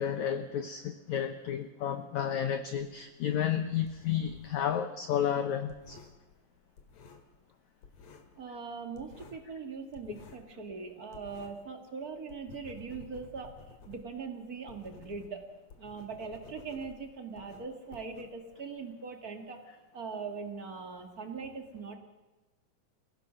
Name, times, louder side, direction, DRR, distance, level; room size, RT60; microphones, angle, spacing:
voice 1, 0.0-6.0, left 9 dB, 90° left, 8 dB, 1.6 m, -32 dB
sound 1, 2.8-4.7 5.0-7.5 7.8-8.4 8.7-11.7 12.0-18.8, left 5 dB, 50° left, 2.6 m, -54 dB
voice 2, 8.4-13.6 13.8-15.5 15.8-19.6 19.9-22.0, right 5 dB, 35° right, 5 dB, 1.5 m, -41 dB
28.0 x 17.0 x 6.2 m, 1.1 s
omnidirectional pair, 4.7 m